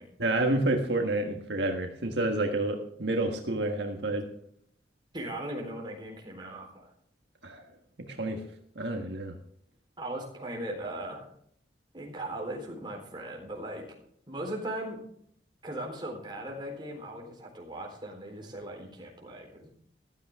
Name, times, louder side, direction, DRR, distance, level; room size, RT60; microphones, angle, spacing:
voice 1, 0.2-4.2 7.4-7.6 8.1-8.4 8.7-9.3, right 2 dB, 70° right, 3 dB, 1.5 m, -29 dB
voice 2, 5.1-6.9 10.0-11.3 11.9-13.8 14.3-15.0 15.6-19.7, right 1 dB, 25° right, 0 dB, 3.8 m, -38 dB
15.0 x 13.5 x 3.6 m, 0.65 s
head